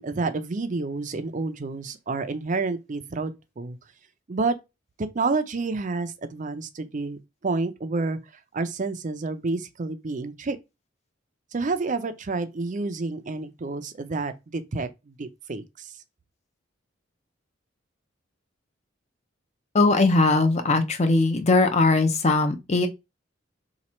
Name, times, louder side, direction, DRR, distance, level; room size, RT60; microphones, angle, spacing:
voice 1, 0.0-3.8 4.3-4.6 5.0-8.2 8.5-10.6 11.5-15.9, right 3 dB, 40° right, 0.5 m, -29 dB
voice 2, 19.7-22.9, left 3 dB, 35° left, 0.6 m, -20 dB
3.0 x 2.4 x 4.2 m
head